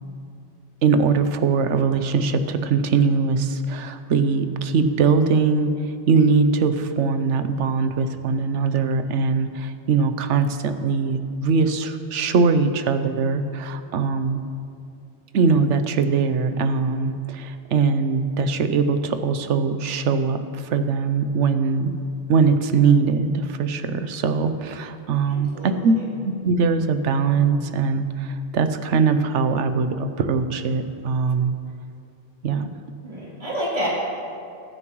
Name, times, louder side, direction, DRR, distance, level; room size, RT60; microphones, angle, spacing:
voice 1, 0.8-14.4 15.3-21.9 22.3-31.5 32.4-32.7, right 5 dB, 90° right, 10 dB, 1.0 m, -21 dB
voice 2, 25.3-25.9 33.0-33.9, equal, 40° right, -8 dB, 3.4 m, -29 dB
20.5 x 9.6 x 3.1 m, 2.5 s
omnidirectional pair, 1.2 m